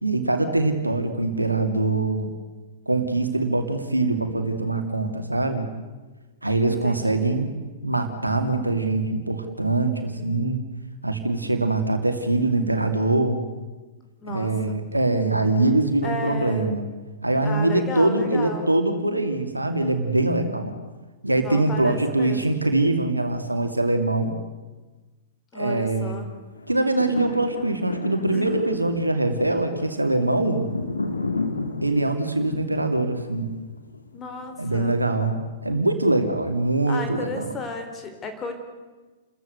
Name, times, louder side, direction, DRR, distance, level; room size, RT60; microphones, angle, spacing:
voice 1, 0.0-2.3 2.9-5.7 6.4-7.5 7.8-10.6 11.0-13.4 14.3-16.9 17.2-20.7 21.2-24.3 25.5-26.2 26.7-30.7 31.8-33.5 34.6-37.5, right 2 dB, 85° right, 6 dB, 2.5 m, -23 dB
voice 2, 6.7-7.4 14.2-14.8 16.0-16.8 17.4-18.7 21.4-22.6 25.5-26.3 28.3-28.7 34.1-35.0 36.9-38.5, left 3 dB, 20° left, 5 dB, 3.7 m, -34 dB
sound 1, 26.6-34.8 35.4-35.5, left 3 dB, 80° left, 2.1 m, -33 dB
29.5 x 14.5 x 8.1 m, 1.3 s
figure-of-eight pair, 105°, 0 cm